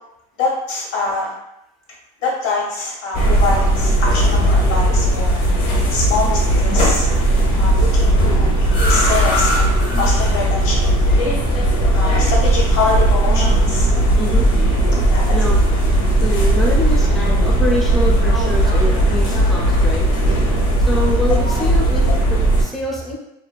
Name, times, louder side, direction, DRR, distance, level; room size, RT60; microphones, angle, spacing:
voice 1, 0.4-1.3 2.2-5.4 5.9-7.1 7.6-11.3 11.9-13.9 15.1-15.3, left 3 dB, 85° left, -4 dB, 1.1 m, -24 dB
sound 1, 3.1-22.6, right 1 dB, 70° left, 0.7 m, -16 dB
voice 2, 15.3-15.6 16.2-20.1 20.8-23.2, left 1 dB, ahead, -4 dB, 0.4 m, -25 dB
2.3 x 2.3 x 2.3 m, 0.82 s
supercardioid pair, 135°, 17 cm